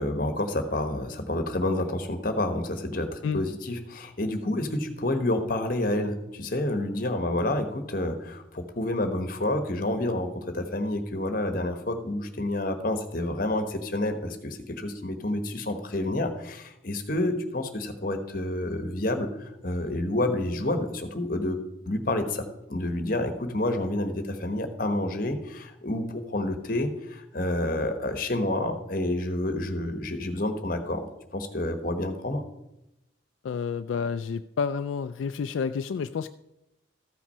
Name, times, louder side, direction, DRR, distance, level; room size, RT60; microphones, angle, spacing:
voice 1, 0.0-21.6 21.9-32.4, left 1 dB, 45° left, 7 dB, 1.2 m, -29 dB
voice 2, 33.4-36.3, left 6 dB, 75° left, 10 dB, 0.3 m, -29 dB
14.0 x 5.9 x 5.5 m, 0.89 s
head